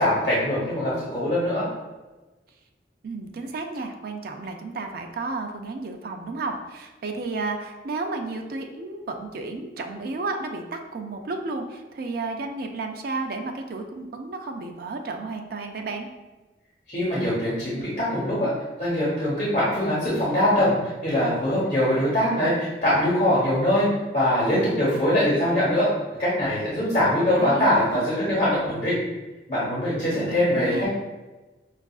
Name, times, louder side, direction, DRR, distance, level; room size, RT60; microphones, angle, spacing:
voice 1, 0.0-1.6 16.9-18.5 18.8-23.9 24.1-25.9 26.2-28.9 29.5-30.9, left 1 dB, 35° left, -9 dB, 1.0 m, -22 dB
voice 2, 3.0-16.1 27.4-28.1 30.1-30.9, right 3 dB, 55° right, 4 dB, 0.4 m, -32 dB
5.4 x 2.4 x 2.3 m, 1.2 s
head